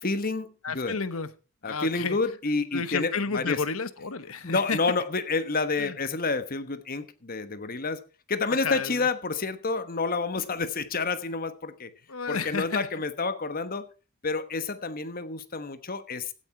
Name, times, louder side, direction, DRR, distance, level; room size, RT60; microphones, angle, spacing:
voice 1, 0.0-1.0 1.6-3.6 4.4-8.0 8.3-11.9 12.3-13.9 14.2-16.3, left 3 dB, 40° left, 1.2 m, -29 dB
voice 2, 0.6-1.3 1.6-2.2 2.7-4.8 5.8-5.9 8.5-9.0 12.1-12.9, left 5 dB, 75° left, 1.2 m, -31 dB
16.5 x 8.8 x 4.4 m
head